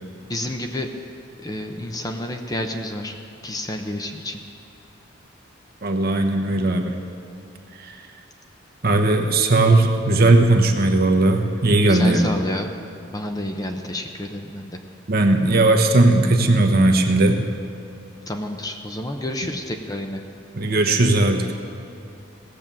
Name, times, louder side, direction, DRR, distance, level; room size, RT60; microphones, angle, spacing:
voice 1, 0.3-0.9 1.4-3.2 3.4-4.4 11.9-12.7 13.1-14.8 18.3-20.2, left 1 dB, 20° left, 4 dB, 0.7 m, -29 dB
voice 2, 5.8-6.9 7.8-7.9 8.8-12.3 15.1-17.4 19.4-19.5 20.5-21.5, right 2 dB, 50° right, 3 dB, 1.1 m, -17 dB
17.0 x 6.9 x 7.5 m, 2.7 s
head